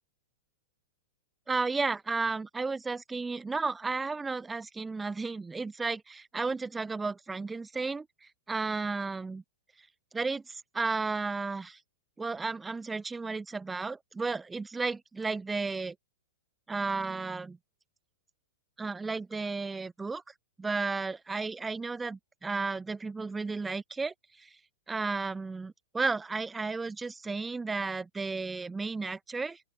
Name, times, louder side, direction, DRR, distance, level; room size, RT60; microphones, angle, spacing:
voice 1, 1.5-9.4 10.1-11.8 12.2-16.0 16.7-17.6 18.8-20.2 20.6-24.5 24.9-29.6, right 4 dB, 10° right, 3.8 m, -33 dB
open air
hypercardioid pair, 105°, 0 cm